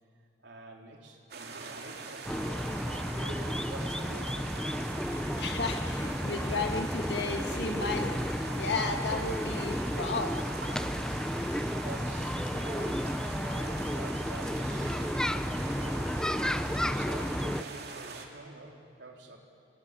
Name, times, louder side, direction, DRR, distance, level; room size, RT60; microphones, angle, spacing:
voice 1, 0.4-2.8 3.1-4.6 11.5-16.2 16.8-19.4, right 2 dB, 85° right, 0 dB, 3.7 m, -48 dB
sound 1, 1.3-18.3, right 4 dB, 60° right, 2.6 m, -43 dB
sound 2, 2.2-17.6, equal, 5° left, 0.6 m, -32 dB
voice 2, 5.4-8.2 8.6-10.4, left 4 dB, 70° left, 4 dB, 2.1 m, -33 dB
25.5 x 18.5 x 9.8 m, 2.2 s
head